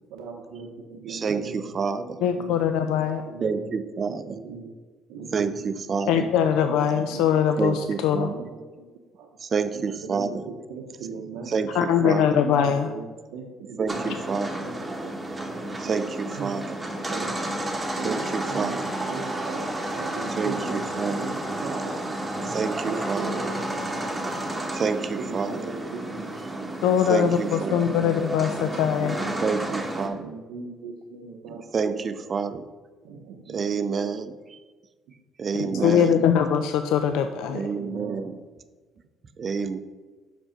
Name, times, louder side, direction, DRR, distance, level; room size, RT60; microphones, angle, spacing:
voice 1, 0.1-2.1 2.3-2.6 2.9-3.8 4.1-4.7 5.1-7.2 7.7-8.9 9.2-9.3 9.7-11.5 12.0-14.4 14.6-14.8 15.0-15.1 15.4-15.9 16.4-16.5 16.9-17.6 18.0-18.2 18.5-20.9 21.2-21.3 21.6-21.9 22.3-22.5 22.8-24.7 25.2-26.8 27.2-27.4 27.6-28.0 28.6-29.7 30.1-32.0 33.0-34.1 35.5-36.1 37.7-38.2, right 4 dB, 90° right, 1 dB, 0.7 m, -39 dB
voice 2, 1.1-2.2 3.4-4.4 5.3-6.1 7.6-8.3 9.4-10.3 11.5-12.2 13.8-14.5 15.8-16.6 18.0-18.8 20.4-21.2 22.5-23.3 24.7-25.6 27.1-27.8 29.4-30.2 31.7-32.6 33.5-34.3 35.4-36.1 37.5-38.3 39.4-39.8, right 5 dB, 35° right, 11 dB, 0.4 m, -28 dB
voice 3, 2.2-3.2 6.1-8.3 11.7-12.9 26.8-29.2 35.8-37.7, left 8 dB, 85° left, 8 dB, 0.4 m, -22 dB
sound 1, 13.9-30.1, right 1 dB, 10° right, 1.0 m, -31 dB
6.1 x 5.2 x 5.0 m, 1.3 s
cardioid pair, 120°, 0 cm